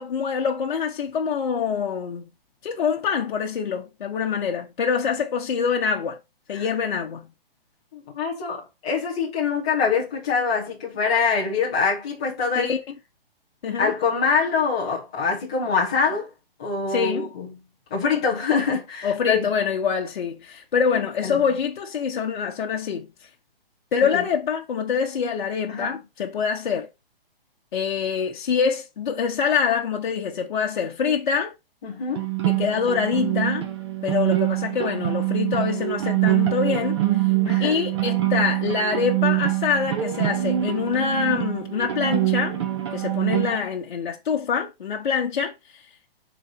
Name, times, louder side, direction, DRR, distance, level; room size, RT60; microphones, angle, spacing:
voice 1, 0.0-2.3 2.6-6.2 6.5-7.3 12.6-12.8 13.6-13.9 16.9-17.3 19.0-23.1 23.9-26.9 27.7-31.5 32.5-33.7 34.0-37.0 37.6-42.6 42.9-45.5, left 6 dB, 55° left, 1.0 m, -25 dB
voice 2, 7.9-12.7 13.8-16.3 16.6-17.5 17.9-19.5 21.2-21.4 24.1-24.2 25.7-26.0 31.8-32.3 37.4-37.8, left 5 dB, 5° left, 0.4 m, -24 dB
sound 1, 32.2-43.6, right 15 dB, 30° right, 0.9 m, -24 dB
6.2 x 4.0 x 4.4 m
hypercardioid pair, 170°, 30 cm